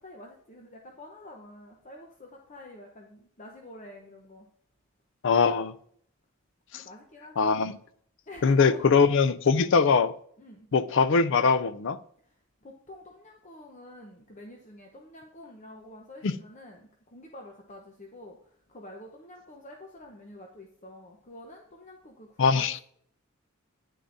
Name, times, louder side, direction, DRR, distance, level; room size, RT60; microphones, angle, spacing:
voice 1, 0.0-4.5 6.7-7.6 8.3-8.8 10.4-10.7 12.2-22.8, left 1 dB, 35° left, 0.9 m, -47 dB
voice 2, 5.2-5.7 6.7-6.8 7.4-7.8 8.4-10.1 10.7-12.0 16.2-16.3 22.4-22.8, left 5 dB, 60° left, 0.4 m, -22 dB
10.0 x 9.3 x 2.6 m
head